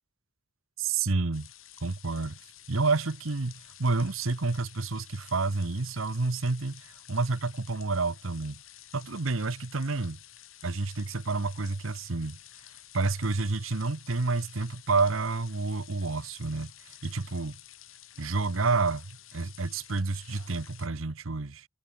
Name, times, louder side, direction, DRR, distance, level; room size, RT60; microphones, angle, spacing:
voice 1, 0.8-1.5 1.8-2.4 2.7-8.6 8.9-10.2 10.6-12.4 12.9-17.6 18.2-21.7, right 3 dB, 85° right, 1.1 m, -29 dB
sound 1, 1.3-20.9, left 13 dB, 85° left, 6.7 m, -52 dB
head